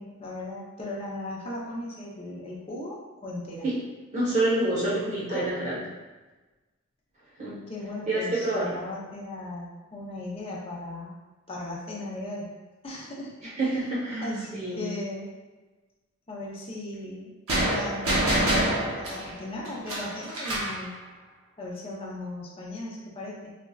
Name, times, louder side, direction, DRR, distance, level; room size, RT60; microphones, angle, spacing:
voice 1, 0.0-3.7 5.3-5.6 7.7-11.2 11.5-12.5 12.8-13.3 13.6-13.8 14.2-15.3 16.3-17.3 17.6-20.9 21.6-23.5, left 2 dB, 25° left, -4 dB, 0.6 m, -37 dB
voice 2, 4.1-5.8 7.4-7.6 8.1-8.8 13.4-14.2 14.5-14.8, right 2 dB, 35° right, -8 dB, 1.0 m, -27 dB
Sigh, 13.9-14.6, right 3 dB, 65° right, 0.4 m, -38 dB
sound 1, 17.5-20.8, right 1 dB, 85° right, 0.8 m, -26 dB
4.1 x 2.3 x 2.3 m, 1.2 s
head